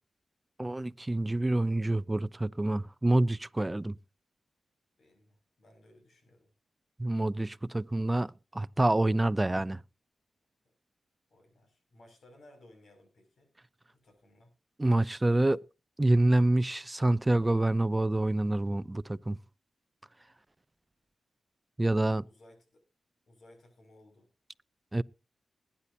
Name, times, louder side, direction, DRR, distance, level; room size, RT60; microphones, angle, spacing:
voice 1, 0.6-4.0 7.0-9.8 14.8-15.6 16.0-19.4 21.8-22.3 24.9-25.0, right 2 dB, 20° right, 0.5 m, -27 dB
voice 2, 5.0-6.5 11.3-13.5 13.9-14.5 22.2-22.8 23.3-24.3, left 1 dB, 75° left, 6.1 m, -59 dB
20.5 x 10.0 x 2.8 m
cardioid pair, 55°, 0 cm